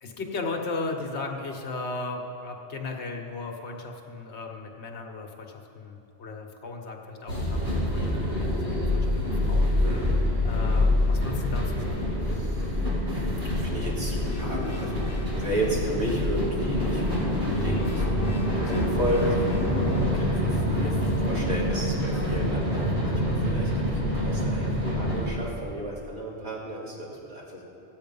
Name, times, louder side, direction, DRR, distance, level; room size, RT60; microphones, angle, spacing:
voice 1, 0.0-9.7 10.4-12.1, left 3 dB, 75° left, 2 dB, 1.4 m, -36 dB
sound 1, 7.3-25.3, left 1 dB, 60° right, 2.9 m, -26 dB
voice 2, 9.8-10.2 12.2-12.8 13.1-18.0 18.7-27.6, right 1 dB, 75° right, -5 dB, 2.5 m, -33 dB
sound 2, 14.3-15.9 16.6-20.3, left 1 dB, 35° left, 1.3 m, -42 dB
14.5 x 8.7 x 5.4 m, 2.9 s
omnidirectional pair, 1.2 m